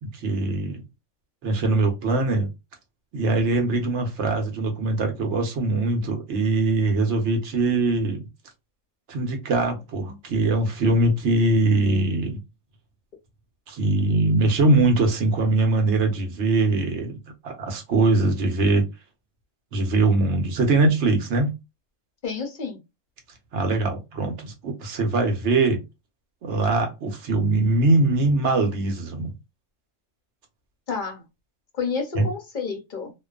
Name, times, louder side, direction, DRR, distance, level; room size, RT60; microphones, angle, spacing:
voice 1, 0.0-0.8 1.4-2.5 3.1-8.2 9.1-12.4 13.7-17.1 17.4-18.9 19.7-21.6 23.5-25.8 26.4-29.3 32.1-32.2, right 2 dB, 60° right, 1.0 m, -22 dB
voice 2, 22.2-22.8 30.9-31.2 31.7-33.1, left 5 dB, 50° left, 0.6 m, -30 dB
2.5 x 2.2 x 2.3 m
omnidirectional pair, 1.4 m